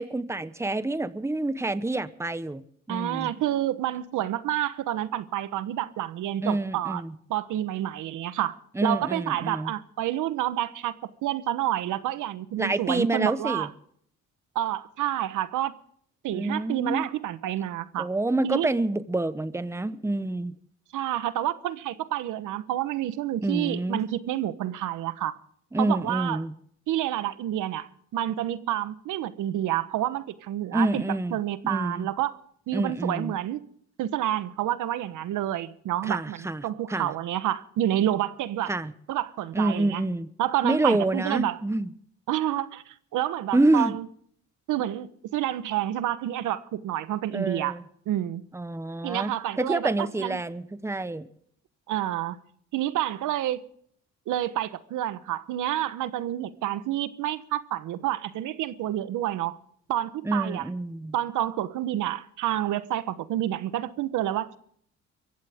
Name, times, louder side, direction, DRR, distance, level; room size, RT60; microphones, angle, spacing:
voice 1, 0.0-3.3 6.4-7.2 8.7-9.7 12.6-13.7 16.3-17.0 18.0-20.6 23.4-24.0 25.7-26.5 30.7-31.4 31.6-32.1 32.7-33.3 36.0-37.1 38.7-38.9 39.5-40.3 40.6-41.9 43.5-43.9 47.3-47.8 48.5-51.3 60.2-61.1, right 2 dB, 10° right, 1.1 m, -27 dB
voice 2, 2.9-7.0 7.3-10.9 11.2-13.7 14.5-15.7 16.2-18.1 18.4-18.7 20.9-25.4 25.8-26.4 26.9-31.0 31.3-32.4 32.7-33.6 34.0-38.7 39.1-40.0 40.4-41.6 42.3-44.1 44.7-47.8 48.1-48.4 49.0-50.4 51.9-52.4 52.7-53.6 54.3-59.6 59.9-60.6 61.1-64.6, right 12 dB, 85° right, 1.2 m, -29 dB
23.5 x 15.5 x 3.6 m
cardioid pair, 90°, 30 cm